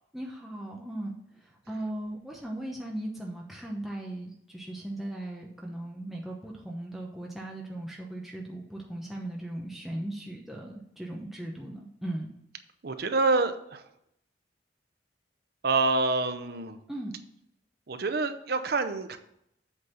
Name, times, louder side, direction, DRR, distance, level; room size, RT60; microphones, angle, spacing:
voice 1, 0.1-1.2 1.7-12.3 16.9-17.2, right 1 dB, ahead, -2 dB, 0.9 m, -38 dB
voice 2, 12.8-13.8 15.6-16.8 17.9-19.2, right 3 dB, 60° right, 9 dB, 0.7 m, -27 dB
8.0 x 4.0 x 5.7 m, 0.75 s
head